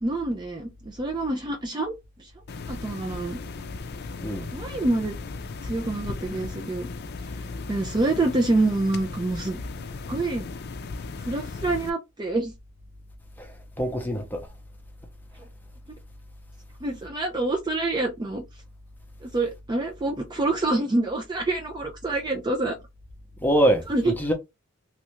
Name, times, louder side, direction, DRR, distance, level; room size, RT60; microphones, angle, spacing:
voice 1, 0.0-1.9 2.2-2.3 2.7-3.4 4.5-5.2 5.6-6.9 7.7-9.6 10.1-10.5 11.3-12.5 16.8-18.4 19.2-22.8 23.9-24.0, right 2 dB, 20° right, 0.4 m, -26 dB
sound 1, 2.5-11.9, left 4 dB, 50° left, 0.4 m, -36 dB
voice 2, 4.2-4.5 13.4-14.5 23.4-24.3, right 1 dB, 10° left, 0.7 m, -24 dB
3.2 x 2.4 x 3.0 m
head